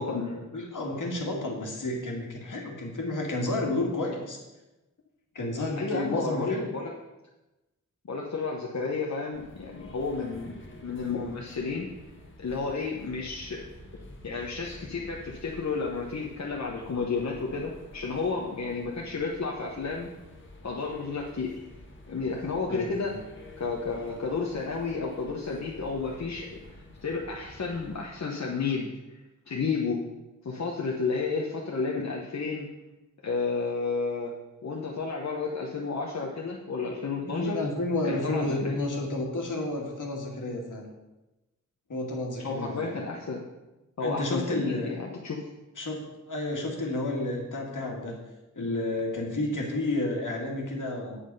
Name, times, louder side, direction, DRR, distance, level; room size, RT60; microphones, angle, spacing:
voice 1, 0.0-0.4 5.8-6.9 8.0-11.9 12.4-13.6 14.2-20.1 20.6-21.5 22.1-23.1 23.6-28.9 29.5-30.0 30.4-32.7 33.2-34.3 34.6-37.6 38.0-38.8 42.4-43.4 44.0-45.5, left 4 dB, 60° left, -2 dB, 1.1 m, -31 dB
voice 2, 0.5-4.4 5.3-6.7 22.7-23.2 37.2-40.8 41.9-43.0 44.0-44.9 45.8-48.2 48.6-51.2, left 2 dB, 75° left, 0 dB, 2.1 m, -31 dB
sound 1, 9.3-28.1, left 1 dB, 40° left, 1.6 m, -49 dB
8.4 x 7.8 x 5.5 m, 1.0 s
wide cardioid pair, 120°, 31 cm